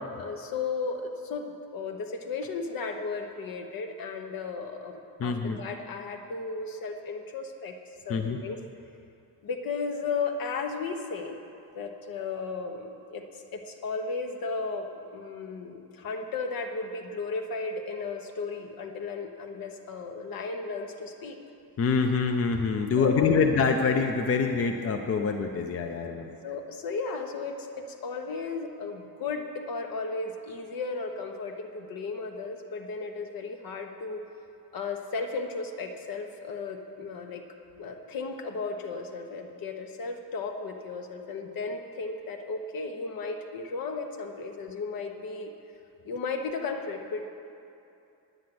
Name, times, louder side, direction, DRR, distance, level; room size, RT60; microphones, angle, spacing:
voice 1, 0.2-7.8 8.0-8.6 9.4-11.4 11.7-13.3 13.5-21.4 23.0-23.4 26.4-34.2 34.7-37.4 37.8-45.5 46.0-47.3, left 4 dB, 70° left, 4 dB, 1.2 m, -35 dB
voice 2, 5.2-5.6 8.1-8.4 21.8-26.4, left 5 dB, 40° left, 4 dB, 0.6 m, -25 dB
10.5 x 9.5 x 7.8 m, 2.7 s
cardioid pair, 160°, 37 cm